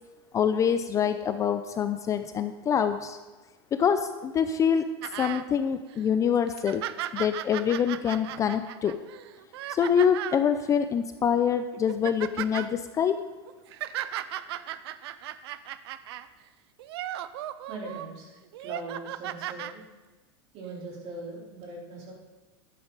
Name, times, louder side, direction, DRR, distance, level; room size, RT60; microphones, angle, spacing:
voice 1, 0.3-3.2 3.7-4.9 5.2-6.8 7.1-9.0 9.7-13.2, left 8 dB, 25° left, 9 dB, 0.5 m, -25 dB
sound 1, 5.0-5.4 5.9-6.0 6.5-10.4 11.2-11.4 11.7-12.7 13.5-16.3 16.8-18.1 18.5-19.7 20.6-20.7, right 13 dB, 70° right, 0.5 m, -36 dB
voice 2, 17.7-18.3 18.6-19.8 20.5-22.1, right 2 dB, 45° right, -3 dB, 4.1 m, -40 dB
12.0 x 9.6 x 4.0 m, 1.2 s
supercardioid pair, 130°, 14 cm